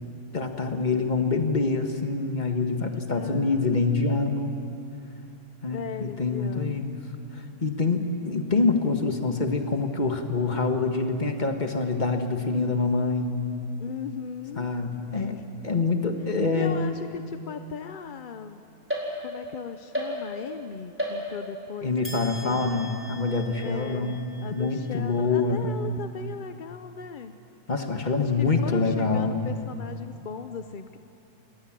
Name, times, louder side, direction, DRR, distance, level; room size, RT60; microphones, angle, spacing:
voice 1, 0.3-4.5 5.6-6.9 7.3-13.4 14.6-15.3 15.6-16.9 21.8-24.2 24.5-25.7 27.7-29.5, left 3 dB, 30° left, 5 dB, 1.7 m, -26 dB
voice 2, 3.1-3.9 5.7-6.8 13.8-14.7 15.1-15.4 16.5-18.6 19.2-22.8 23.6-27.3 28.2-31.0, left 6 dB, 50° left, 9 dB, 0.6 m, -38 dB
sound 1, 18.9-19.5 19.9-20.6 21.0-21.6 22.0-25.5, equal, 10° right, 4.4 m, -36 dB
28.0 x 19.5 x 7.5 m, 2.7 s
omnidirectional pair, 1.6 m